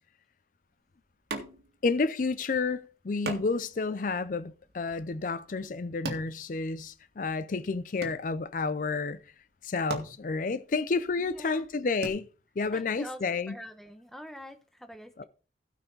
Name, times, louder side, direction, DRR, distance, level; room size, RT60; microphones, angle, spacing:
sound 1, 1.3-1.9 2.2-2.3 3.3-7.2 7.5-8.7 9.4-9.5 9.8-12.1, right 2 dB, 70° right, 2.0 m, -41 dB
voice 1, 1.8-9.2 9.6-12.3 12.6-13.5 15.2-15.3, left 4 dB, 50° left, 0.4 m, -30 dB
voice 2, 11.2-11.7 12.7-13.2 13.5-15.2, equal, ahead, 0.8 m, -45 dB
16.0 x 5.7 x 3.9 m
head